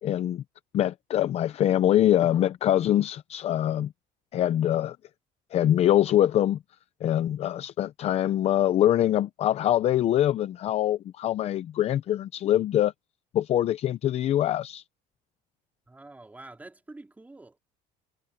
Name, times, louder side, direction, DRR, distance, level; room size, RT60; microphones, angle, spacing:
voice 1, 0.0-0.4 0.7-3.9 4.3-5.0 5.5-6.6 7.0-12.9 13.3-14.8, left 12 dB, 40° left, 0.6 m, -24 dB
voice 2, 15.9-17.6, right 2 dB, 10° right, 3.2 m, -47 dB
cardioid pair, 160°, 17 cm